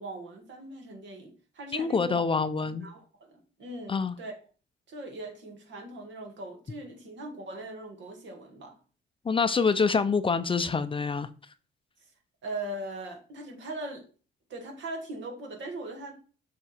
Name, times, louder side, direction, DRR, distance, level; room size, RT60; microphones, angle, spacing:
voice 1, 0.0-2.2 2.8-4.4 4.9-8.7 12.4-14.1 14.5-16.2, right 2 dB, 65° right, 2.0 m, -40 dB
voice 2, 1.7-2.9 3.9-4.2 9.2-11.3, left 5 dB, 25° left, 0.5 m, -26 dB
6.8 x 3.6 x 4.3 m
cardioid pair, 90°, 20 cm